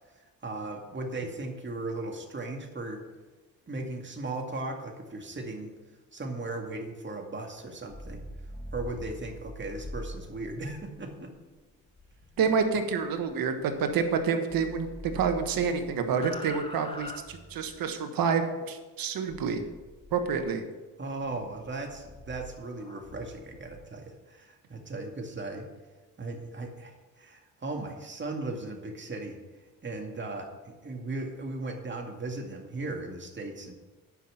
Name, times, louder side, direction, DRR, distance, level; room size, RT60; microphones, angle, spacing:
voice 1, 0.4-3.0 3.7-5.7 6.1-8.3 8.7-11.3 21.0-25.7 26.2-29.4 29.8-33.7, right 2 dB, 30° right, 2 dB, 2.2 m, -37 dB
sound 1, 7.8-14.2 14.5-17.9 19.3-20.5 21.2-23.8, left 1 dB, 15° left, 1.4 m, -45 dB
voice 2, 12.4-19.6 20.1-20.6, right 6 dB, 80° right, 6 dB, 1.3 m, -28 dB
9.7 x 6.0 x 7.7 m, 1.2 s
cardioid pair, 80°, 35 cm